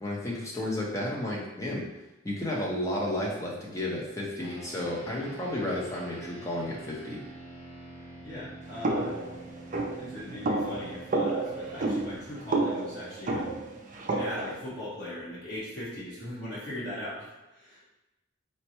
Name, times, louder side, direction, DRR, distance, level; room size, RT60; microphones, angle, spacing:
voice 1, 0.0-1.8 2.2-7.2, left 1 dB, 15° left, -4 dB, 0.6 m, -32 dB
sound 1, 4.4-14.0, right 2 dB, 70° left, 1.2 m, -47 dB
voice 2, 8.2-9.2 10.0-13.5 14.1-17.8, left 1 dB, 55° left, -9 dB, 1.2 m, -39 dB
sound 2, 8.8-14.6, right 2 dB, 40° right, 0.3 m, -30 dB
4.3 x 2.0 x 2.9 m, 0.98 s
head